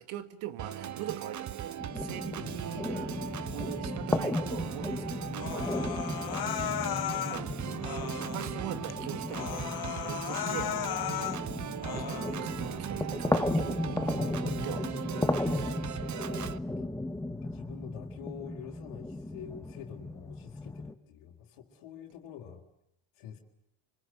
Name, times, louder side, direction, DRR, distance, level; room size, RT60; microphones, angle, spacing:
voice 1, 0.0-3.1 3.5-5.9 6.2-6.5 7.2-7.6 8.2-10.7 11.0-11.3 12.1-14.9 15.3-16.0, right 12 dB, 75° right, 11 dB, 2.0 m, -42 dB
Organ, 0.6-16.6, right 10 dB, 35° right, 1.0 m, -39 dB
sound 1, 1.8-20.9, left 2 dB, 5° left, 1.1 m, -35 dB
Human voice, 5.4-7.4 7.8-8.5 8.9-9.0 9.3-11.4 11.8-12.4, left 12 dB, 50° left, 1.0 m, -35 dB
voice 2, 14.1-15.0 16.6-16.9 17.2-22.6 23.2-23.4, left 8 dB, 80° left, -2 dB, 3.7 m, -46 dB
27.5 x 25.0 x 7.8 m, 0.77 s
cardioid pair, 130°, 49 cm